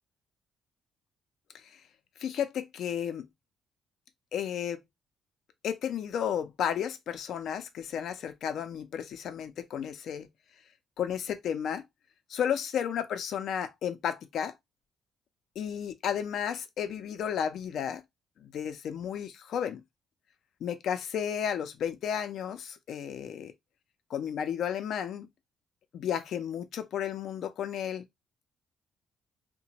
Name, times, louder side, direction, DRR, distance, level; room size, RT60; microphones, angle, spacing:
voice 1, 2.2-3.3 4.3-4.8 5.6-10.3 11.0-11.8 12.3-14.5 15.6-18.0 18.4-19.8 20.6-23.5 24.1-25.3 25.9-28.1, left 8 dB, 70° left, 0.5 m, -33 dB
2.9 x 2.2 x 2.7 m
cardioid pair, 90°, 0 cm